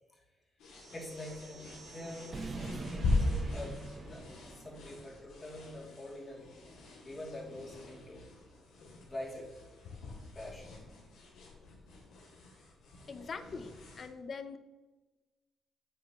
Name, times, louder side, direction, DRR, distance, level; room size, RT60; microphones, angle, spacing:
sound 1, 0.6-14.1, left 2 dB, 85° left, 3.1 m, -40 dB
sound 2, 0.8-5.1, right 3 dB, 40° right, 1.0 m, -44 dB
voice 1, 0.9-6.5 7.0-8.3 9.1-9.5 10.3-10.8, left 1 dB, 30° left, -3 dB, 2.9 m, -45 dB
voice 2, 13.1-14.6, left 5 dB, 45° left, 10 dB, 0.8 m, -43 dB
8.9 x 8.1 x 3.1 m, 1.2 s
cardioid pair, 90°, 0 cm